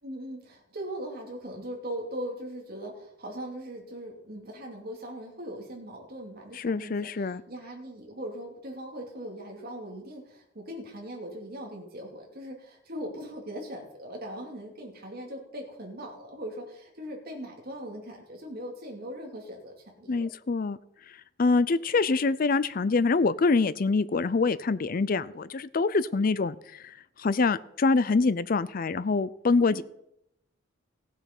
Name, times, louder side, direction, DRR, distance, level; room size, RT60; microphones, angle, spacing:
voice 1, 0.0-20.3 29.7-29.8, equal, 50° right, 1 dB, 2.7 m, -40 dB
voice 2, 6.5-7.4 20.1-20.8 21.4-29.8, left 4 dB, 45° left, 17 dB, 0.5 m, -25 dB
15.5 x 7.3 x 5.4 m, 0.78 s
head